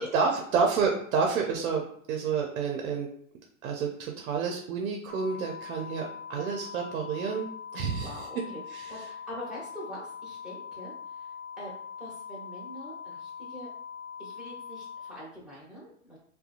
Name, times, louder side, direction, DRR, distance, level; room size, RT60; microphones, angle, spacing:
voice 1, 0.1-3.1 3.6-7.5 7.7-8.5 8.7-8.9, right 5 dB, 80° right, 1 dB, 0.6 m, -29 dB
sound 1, 5.1-15.1, left 7 dB, 30° left, 0.4 m, -42 dB
voice 2, 7.9-8.6 8.9-11.7 12.0-13.7 14.2-16.2, equal, ahead, -7 dB, 1.1 m, -43 dB
2.7 x 2.2 x 2.5 m, 0.63 s
hypercardioid pair, 110°, 41 cm